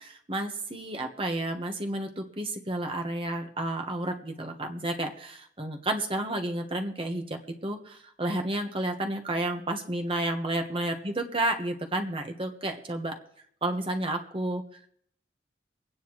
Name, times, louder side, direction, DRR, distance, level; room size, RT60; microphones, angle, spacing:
voice 1, 0.0-13.2 13.6-14.9, right 1 dB, 30° right, 4 dB, 1.3 m, -31 dB
24.5 x 9.4 x 3.1 m, 0.65 s
head